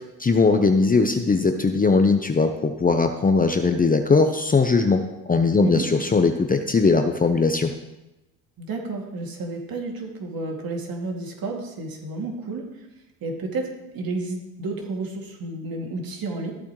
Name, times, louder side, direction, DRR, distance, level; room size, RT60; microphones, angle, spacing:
voice 1, 0.2-7.7, left 4 dB, 20° left, 6 dB, 0.8 m, -20 dB
voice 2, 8.6-12.9 13.2-16.5, right 2 dB, 50° right, 0 dB, 2.6 m, -31 dB
14.0 x 8.4 x 3.2 m, 0.99 s
supercardioid pair, 75°, 46 cm